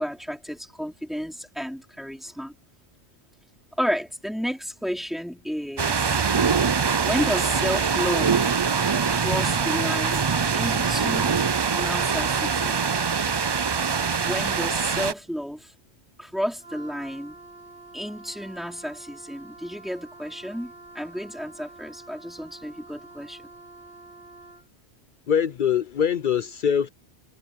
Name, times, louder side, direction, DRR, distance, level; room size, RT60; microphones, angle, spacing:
voice 1, 0.0-2.5 3.8-6.2 7.0-8.5 9.1-11.3 11.7-12.8 14.2-15.7 16.2-17.4 17.9-23.5, equal, ahead, 3.9 m, -31 dB
sound 1, 5.8-15.1, right 6 dB, 40° right, 0.3 m, -23 dB
Wind instrument woodwind instrument, 16.6-24.7, right 2 dB, 85° left, 6.2 m, -47 dB
voice 2, 25.3-26.9, left 8 dB, 55° left, 0.6 m, -23 dB
omnidirectional pair, 1.1 m